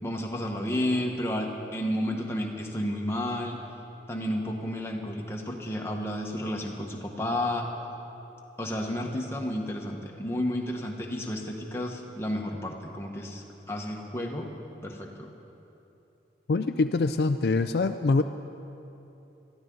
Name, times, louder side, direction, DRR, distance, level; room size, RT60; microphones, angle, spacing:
voice 1, 0.0-3.6 4.1-7.7 8.6-14.5 14.8-15.3, left 1 dB, 15° left, 0 dB, 1.3 m, -31 dB
voice 2, 16.5-18.2, left 3 dB, 60° left, 9 dB, 0.4 m, -24 dB
21.5 x 14.0 x 3.9 m, 2.9 s
head